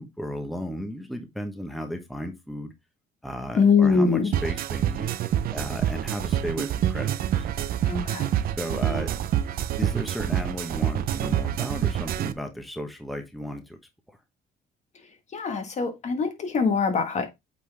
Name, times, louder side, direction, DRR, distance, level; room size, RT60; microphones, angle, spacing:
voice 1, 0.0-2.7 3.2-5.1 5.5-7.1 7.4-7.5 8.6-9.1 9.8-13.8, equal, ahead, 1.1 m, -34 dB
voice 2, 3.5-4.3 7.9-8.3 15.3-17.3, left 5 dB, 45° left, 1.5 m, -23 dB
sound 1, 4.3-12.3, right 10 dB, 60° right, 0.6 m, -27 dB
8.2 x 4.0 x 3.4 m
cardioid pair, 110°, 17 cm